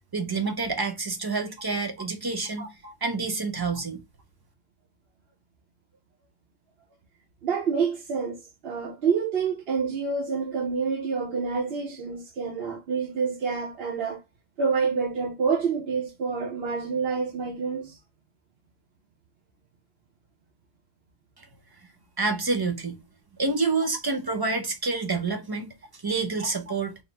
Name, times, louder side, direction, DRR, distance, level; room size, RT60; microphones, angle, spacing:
voice 1, 0.1-2.7 3.0-4.0 22.2-23.0 23.4-25.7 26.0-27.0, right 3 dB, 30° right, 0.4 m, -28 dB
voice 2, 2.6-2.9 3.7-3.8 7.4-14.2 14.6-18.0 26.4-26.5, right 5 dB, 65° right, 0.9 m, -28 dB
4.0 x 2.0 x 3.9 m
omnidirectional pair, 1.1 m